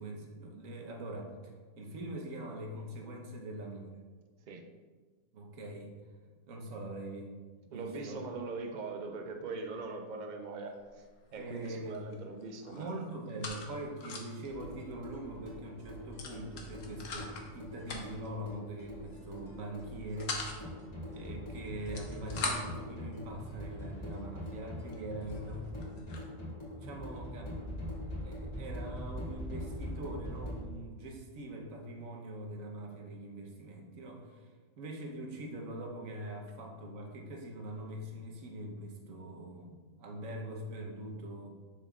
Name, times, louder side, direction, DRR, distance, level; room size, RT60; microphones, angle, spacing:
voice 1, 0.0-3.9 5.3-5.9 6.5-7.3 7.7-8.2 11.4-12.0 12.7-20.7 21.1-25.6 26.7-27.5 28.1-34.5 34.8-41.5, right 1 dB, 80° right, 2 dB, 1.3 m, -43 dB
voice 2, 7.7-11.0 11.3-13.1, right 3 dB, 50° right, 4 dB, 0.6 m, -41 dB
sound 1, 10.7-11.0 11.3-12.1 12.4-14.5 14.9-15.0 15.2-15.4 16.2-17.5 17.8-18.3 19.1-19.4 19.8-20.6 21.7-22.8 23.6-23.7 24.3-24.4 24.9-25.0 25.2-26.3, left 4 dB, 75° left, 1.2 m, -41 dB
sound 2, 14.4-30.6, equal, 30° left, 2.0 m, -42 dB
sound 3, 14.5-25.1, right 1 dB, 50° left, 1.9 m, -54 dB
6.9 x 6.3 x 2.4 m, 1.4 s
omnidirectional pair, 1.4 m